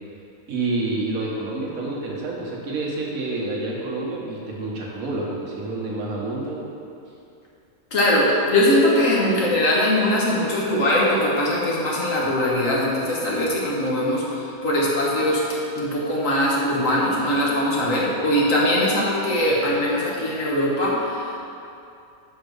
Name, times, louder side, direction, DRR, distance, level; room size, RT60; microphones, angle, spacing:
voice 1, 0.5-6.7, right 2 dB, 75° right, -4 dB, 1.6 m, -28 dB
voice 2, 7.9-21.3, left 1 dB, 65° left, -4 dB, 1.6 m, -21 dB
5.9 x 5.2 x 5.2 m, 2.6 s
omnidirectional pair, 1.5 m